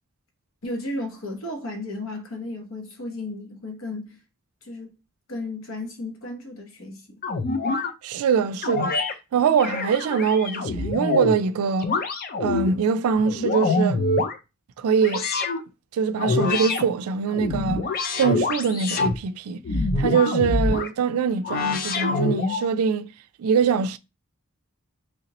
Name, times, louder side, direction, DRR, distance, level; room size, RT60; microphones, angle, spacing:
voice 1, 0.6-4.2 4.6-4.9 5.3-7.2, left 2 dB, 65° left, 1.0 m, -34 dB
sound 1, 7.2-7.9 8.6-9.1 9.6-11.4 11.8-12.7 13.2-14.4 15.0-15.6 16.2-16.8 17.3-19.2 19.6-20.9 21.4-22.7, left 3 dB, 45° left, 0.4 m, -25 dB
voice 2, 8.0-9.0 9.3-11.9 12.4-14.0 14.8-15.3 15.9-17.8 18.2-19.6 20.0-23.1 23.4-24.0, right 6 dB, 85° right, 0.4 m, -23 dB
3.2 x 2.9 x 2.9 m
head